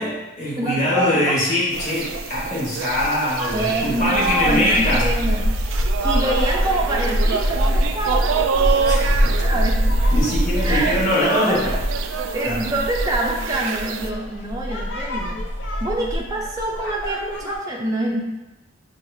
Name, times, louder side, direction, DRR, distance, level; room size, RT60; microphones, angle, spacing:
voice 1, 0.0-5.1 8.8-9.4 10.1-11.8 12.4-12.6, left 1 dB, 35° left, -7 dB, 1.3 m, -22 dB
voice 2, 0.6-1.4 3.5-5.5 6.0-8.8 9.4-9.8 10.6-11.6 12.3-15.4 15.8-18.2, right 2 dB, 20° right, -3 dB, 0.4 m, -25 dB
sound 1, 1.7-17.6, equal, 70° left, 0.6 m, -24 dB
sound 2, 1.7-14.1, right 6 dB, 85° right, 0.3 m, -28 dB
6.2 x 2.4 x 2.7 m, 1.0 s
head